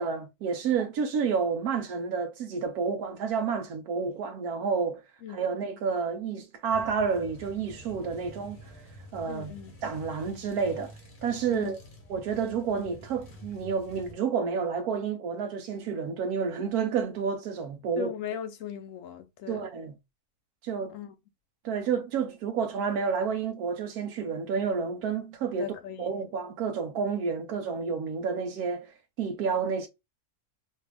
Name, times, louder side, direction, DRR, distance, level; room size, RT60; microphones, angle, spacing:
voice 1, 0.0-5.0 5.3-8.6 9.1-9.5 9.8-10.9 11.2-11.8 12.1-18.1 19.5-19.9 20.6-21.0 21.6-25.7 26.0-28.9 29.2-29.9, right 6 dB, 80° right, 1.2 m, -30 dB
sound 1, 6.7-14.1, equal, 40° left, 0.9 m, -48 dB
voice 2, 9.3-9.7 11.5-11.8 18.0-19.7 20.9-21.1 25.5-26.1, left 8 dB, 70° left, 0.9 m, -38 dB
3.3 x 2.3 x 3.3 m
omnidirectional pair, 1.6 m